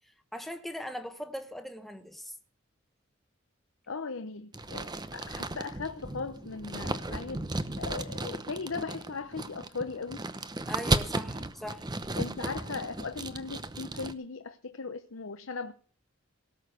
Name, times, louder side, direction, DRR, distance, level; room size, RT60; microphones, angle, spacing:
voice 1, 0.3-2.4 10.7-11.9, equal, ahead, 1.3 m, -40 dB
voice 2, 3.9-10.3 12.2-15.7, left 4 dB, 80° left, 0.9 m, -38 dB
sound 1, 4.5-14.1, right 2 dB, 20° right, 0.8 m, -35 dB
18.0 x 6.5 x 7.9 m
head